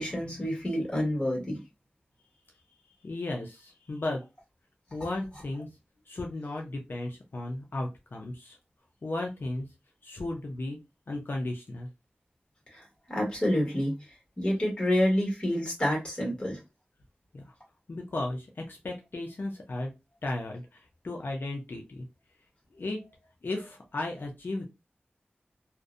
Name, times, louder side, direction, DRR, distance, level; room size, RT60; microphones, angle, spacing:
voice 1, 0.0-1.6 12.7-12.8 13.1-13.9 14.4-16.6, equal, 25° left, -2 dB, 1.4 m, -28 dB
voice 2, 3.0-4.2 4.9-5.7 6.1-8.6 9.0-9.7 10.0-10.8 11.1-11.9 17.3-17.5 17.9-19.9 20.2-22.1 22.7-23.0 23.4-24.7, left 2 dB, 60° left, 1 dB, 0.5 m, -35 dB
2.5 x 2.1 x 2.4 m, 0.25 s
wide cardioid pair, 80°, 4 cm